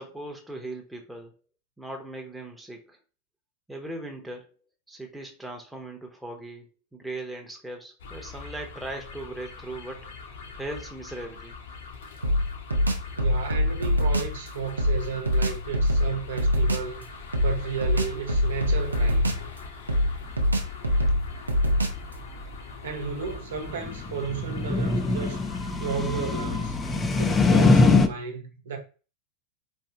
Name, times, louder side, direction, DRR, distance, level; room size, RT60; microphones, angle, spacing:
voice 1, 0.0-1.4 1.8-3.0 3.7-4.5 4.9-6.7 6.9-10.1 10.5-11.5, right 2 dB, 5° right, 0.9 m, -38 dB
sound 1, 8.0-27.8, left 3 dB, 60° left, 0.9 m, -41 dB
sound 2, 12.2-14.4 14.8-16.9 17.3-19.6 19.9-22.1, left 1 dB, 80° right, 0.6 m, -24 dB
voice 2, 13.2-17.1 17.4-19.5 22.8-25.4 25.8-26.8 27.2-28.8, right 6 dB, 60° right, 1.1 m, -33 dB
sound 3, 23.8-28.1, left 3 dB, 15° left, 0.5 m, -22 dB
4.5 x 3.3 x 2.8 m
figure-of-eight pair, 90°, 0 cm